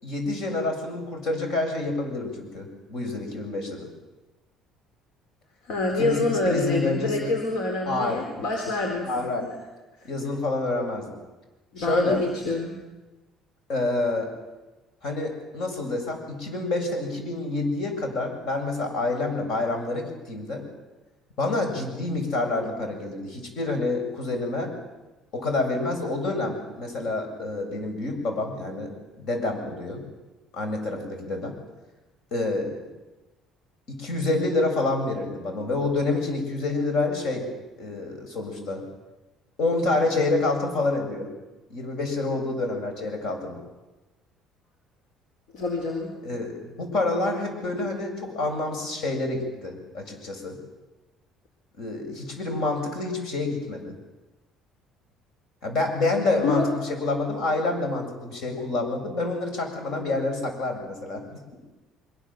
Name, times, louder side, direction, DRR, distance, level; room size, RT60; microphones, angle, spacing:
voice 1, 0.0-3.9 6.0-7.3 7.9-8.2 9.0-9.5 10.0-11.1 11.8-12.2 13.7-14.3 15.0-20.6 21.4-24.7 25.3-28.9 29.2-30.0 30.5-31.6 32.3-32.8 33.9-37.4 37.8-38.8 39.6-41.3 41.7-43.6 46.2-50.6 51.8-53.9 55.6-61.6, left 2 dB, 65° left, 4 dB, 7.5 m, -28 dB
voice 2, 5.6-9.1 9.4-9.5 11.7-12.8 45.5-46.1 56.4-56.7, left 3 dB, 80° left, 2 dB, 4.1 m, -26 dB
24.5 x 23.5 x 7.6 m, 1.1 s
cardioid pair, 130°, 0 cm